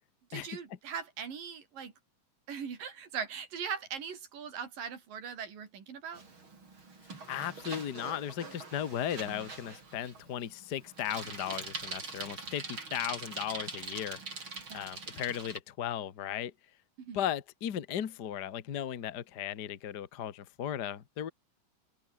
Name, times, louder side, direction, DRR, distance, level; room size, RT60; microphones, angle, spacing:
voice 1, 0.3-1.9 2.5-6.2 14.7-15.0 17.0-17.2, right 7 dB, 80° right, 5.4 m, -40 dB
Bicycle, 6.1-15.6, right 4 dB, 35° right, 5.3 m, -43 dB
voice 2, 7.3-14.2 14.7-16.5 17.1-21.3, left 10 dB, 55° left, 1.1 m, -36 dB
omnidirectional pair, 3.9 m